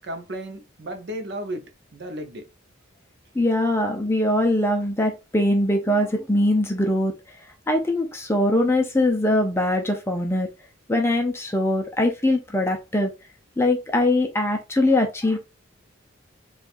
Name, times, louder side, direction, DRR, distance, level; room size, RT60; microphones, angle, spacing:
voice 1, 0.0-2.5, right 1 dB, 55° right, 0.7 m, -34 dB
voice 2, 3.3-7.1 7.7-10.5 10.9-13.1 13.6-15.4, left 1 dB, 10° left, 0.4 m, -22 dB
4.2 x 2.4 x 2.5 m
head